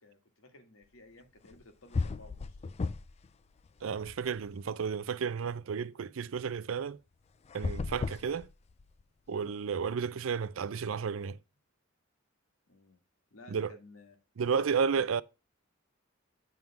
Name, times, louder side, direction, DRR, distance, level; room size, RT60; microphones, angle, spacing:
voice 1, 0.0-2.7 9.3-9.6 12.7-13.0 13.3-14.2 14.9-15.1, left 2 dB, 85° left, 1.8 m, -56 dB
sound 1, 1.5-1.6 1.9-3.3 3.6-4.7 7.4-9.0, left 3 dB, 30° left, 0.4 m, -35 dB
voice 2, 3.8-7.0 7.5-8.5 9.3-11.4 13.5-13.8 14.4-15.2, right 6 dB, 70° right, 0.4 m, -32 dB
9.3 x 3.6 x 5.8 m
head